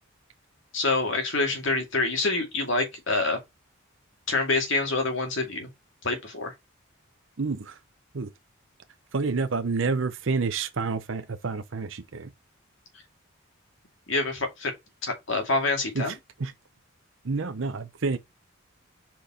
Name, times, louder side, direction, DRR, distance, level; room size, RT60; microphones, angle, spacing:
voice 1, 0.7-3.4 4.3-5.7 6.0-6.5 14.1-14.7 15.0-16.1, left 3 dB, 60° left, 2.3 m, -26 dB
voice 2, 7.4-7.8 8.1-8.3 9.1-12.3 15.9-16.5 17.2-18.2, right 4 dB, 65° right, 0.6 m, -29 dB
5.2 x 4.5 x 4.3 m
head